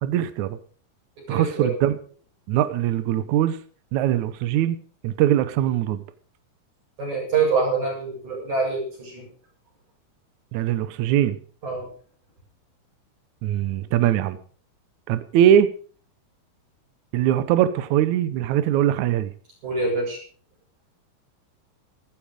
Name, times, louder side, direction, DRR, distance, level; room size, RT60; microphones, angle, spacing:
voice 1, 0.0-0.6 1.3-2.0 2.5-3.6 3.9-4.8 5.0-6.0 10.5-11.4 13.4-14.4 15.1-15.7 17.1-19.3, right 11 dB, 80° right, 12 dB, 1.7 m, -21 dB
voice 2, 1.3-1.8 7.0-9.3 11.6-11.9 19.6-20.2, right 4 dB, 50° right, -1 dB, 8.7 m, -25 dB
15.0 x 14.0 x 5.0 m, 0.43 s
omnidirectional pair, 4.5 m